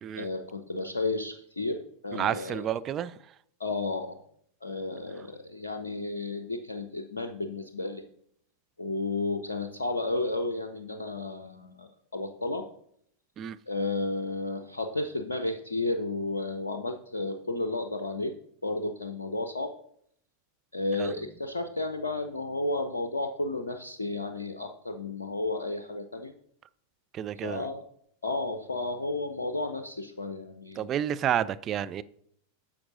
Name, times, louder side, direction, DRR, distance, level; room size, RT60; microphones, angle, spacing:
voice 1, 0.1-2.7 3.6-4.2 4.6-8.0 8.8-12.7 13.7-18.3 18.6-19.7 20.7-26.3 27.4-27.8 28.2-30.8, left 2 dB, 75° left, 0.5 m, -32 dB
voice 2, 2.1-3.2 13.4-13.6 21.0-21.1 27.1-27.7 30.8-32.0, right 10 dB, 30° right, 0.3 m, -30 dB
10.5 x 7.2 x 2.6 m
figure-of-eight pair, 90°, 0 cm